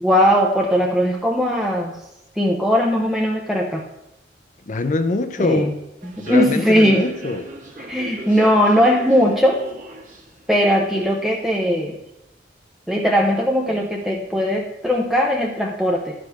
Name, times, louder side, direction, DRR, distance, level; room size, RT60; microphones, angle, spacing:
voice 1, 0.0-1.9 2.4-3.8 5.4-5.7 6.0-7.1 7.9-9.6 10.5-12.0 12.9-16.1, equal, ahead, 0.7 m, -19 dB
voice 2, 4.7-5.7 6.2-7.5, left 2 dB, 45° left, 0.6 m, -23 dB
Human voice / Subway metro underground, 6.0-11.6, right 2 dB, 50° right, 1.5 m, -38 dB
12.0 x 5.1 x 5.8 m
head